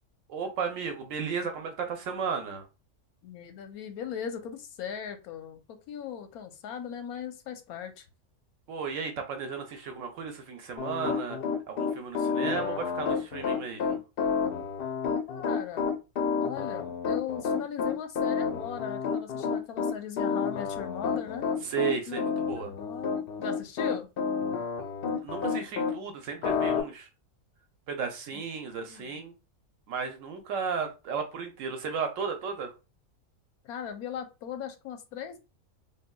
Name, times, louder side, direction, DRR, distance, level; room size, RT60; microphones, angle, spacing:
voice 1, 0.3-2.6 8.7-11.4 11.7-14.0 21.6-22.7 25.2-27.1 27.9-29.3 29.9-32.7, right 6 dB, 70° right, 0.9 m, -34 dB
voice 2, 3.2-5.6 5.9-8.1 15.3-16.0 16.4-21.5 22.1-24.1 28.3-28.4 28.9-29.2 33.6-35.4, left 8 dB, 90° left, 1.1 m, -38 dB
Piano, 10.8-25.9 26.4-26.8, left 6 dB, 60° left, 0.6 m, -29 dB
3.6 x 2.2 x 2.2 m
omnidirectional pair, 1.5 m